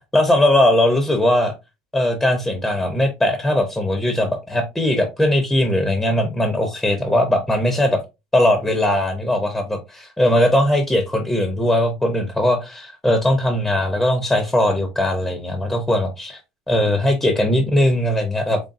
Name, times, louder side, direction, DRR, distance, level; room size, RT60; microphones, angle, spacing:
voice 1, 0.1-1.5 1.9-8.0 8.3-16.4 16.7-18.6, left 1 dB, 5° left, 0.7 m, -19 dB
4.0 x 3.3 x 2.5 m
supercardioid pair, 135°, 3 cm